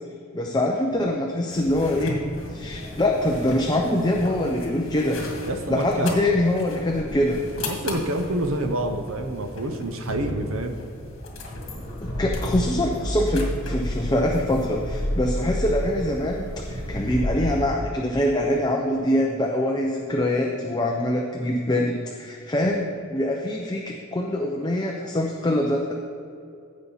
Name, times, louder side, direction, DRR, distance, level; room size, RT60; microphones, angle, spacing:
voice 1, 0.3-5.2 5.7-7.4 12.0-25.9, left 1 dB, 20° left, 0 dB, 0.7 m, -24 dB
sound 1, 1.5-17.6, left 1 dB, 70° left, 1.9 m, -32 dB
voice 2, 5.5-6.2 7.6-10.8, right 1 dB, 75° right, 6 dB, 0.8 m, -28 dB
15.5 x 5.5 x 4.0 m, 2.5 s
head